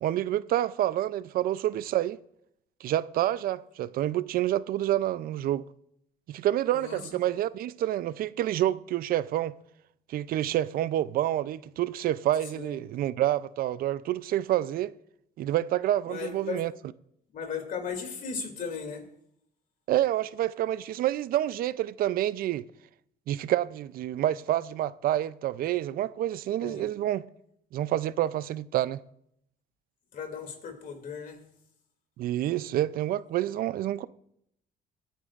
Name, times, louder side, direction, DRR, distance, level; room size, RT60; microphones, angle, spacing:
voice 1, 0.0-2.2 2.8-5.6 6.3-9.5 10.1-14.9 15.4-16.7 19.9-22.6 23.3-27.2 27.7-29.0 32.2-34.1, right 13 dB, 60° right, 0.4 m, -28 dB
voice 2, 6.7-7.3 12.5-12.8 16.1-16.6 17.3-19.0 26.6-26.8 30.1-31.4, left 6 dB, 55° left, 2.6 m, -36 dB
26.5 x 9.1 x 2.5 m
cardioid pair, 110°, 17 cm